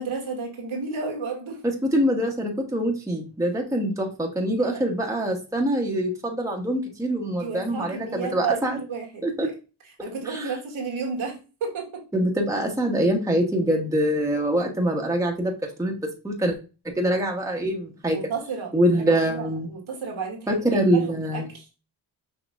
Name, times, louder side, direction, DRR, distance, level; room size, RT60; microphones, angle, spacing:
voice 1, 0.0-1.6 4.6-4.8 7.4-9.5 9.8-12.0 18.1-21.7, right 5 dB, 75° right, 1 dB, 1.6 m, -32 dB
voice 2, 1.6-8.8 9.2-9.5 10.3-10.5 12.1-16.0 16.2-16.6 17.0-18.2 18.7-19.7 20.5-21.5, right 1 dB, 5° right, 1 dB, 1.0 m, -24 dB
5.9 x 2.9 x 2.5 m, 0.32 s
cardioid pair, 60°, 48 cm